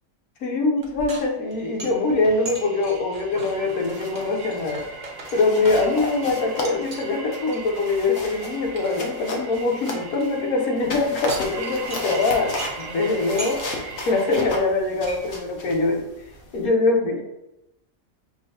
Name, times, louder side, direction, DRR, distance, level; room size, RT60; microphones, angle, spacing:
voice 1, 0.4-4.9 5.3-13.6 14.0-16.1 16.5-17.2, left 3 dB, 80° left, 2 dB, 1.2 m, -23 dB
sound 1, 0.8-6.2 6.6-7.1 7.5-10.2 10.9-12.9 13.2-13.9 14.3-14.4 14.6-15.2, right 2 dB, 40° right, 0.7 m, -39 dB
sound 2, 1.5-14.6, right 4 dB, 85° right, 1.1 m, -39 dB
sound 3, 3.6-4.3 4.6-4.8 5.2-10.4 10.8-16.7, left 2 dB, 55° left, 0.9 m, -35 dB
6.0 x 2.5 x 2.7 m, 0.87 s
omnidirectional pair, 1.5 m